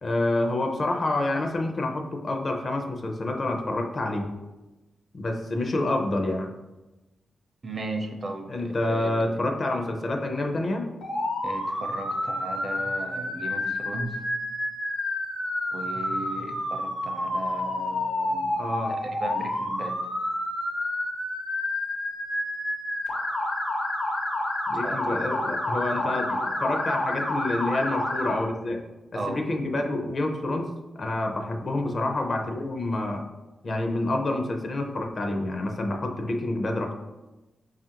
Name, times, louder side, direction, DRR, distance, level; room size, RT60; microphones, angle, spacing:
voice 1, 0.0-4.3 5.1-6.5 8.5-10.9 18.6-19.0 24.7-26.3 26.6-28.8 29.3-33.2 33.6-36.9, left 2 dB, 45° left, 4 dB, 0.5 m, -28 dB
voice 2, 7.6-9.2 11.4-14.2 15.7-18.5 18.9-20.0 24.7-25.0 25.9-26.2 29.1-29.3, right 2 dB, 40° right, 3 dB, 0.5 m, -36 dB
Motor vehicle (road) / Siren, 11.0-28.3, left 1 dB, 80° left, 0.8 m, -29 dB
4.8 x 2.4 x 2.9 m, 1.1 s
cardioid pair, 90°, 0 cm